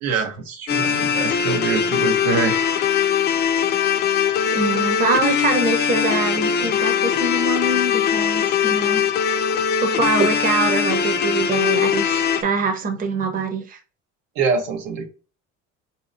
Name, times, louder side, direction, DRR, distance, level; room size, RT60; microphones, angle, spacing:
voice 1, 0.0-2.8 14.4-15.1, right 5 dB, 90° right, 1.1 m, -24 dB
sound 1, 0.7-12.4, left 7 dB, 35° left, 0.4 m, -21 dB
voice 2, 4.5-9.0 9.8-13.8, right 3 dB, 25° right, 0.7 m, -23 dB
4.2 x 2.8 x 2.5 m
cardioid pair, 135°, 32 cm